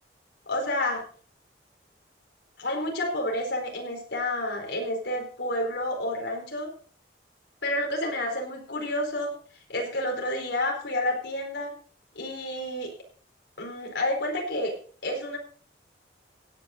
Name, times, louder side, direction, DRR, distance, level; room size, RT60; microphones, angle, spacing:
voice 1, 0.5-1.0 2.6-6.7 7.6-9.3 9.7-11.7 12.1-12.9 13.6-14.7 15.0-15.4, left 1 dB, 75° left, 2 dB, 4.6 m, -29 dB
16.5 x 9.2 x 3.9 m, 0.43 s
head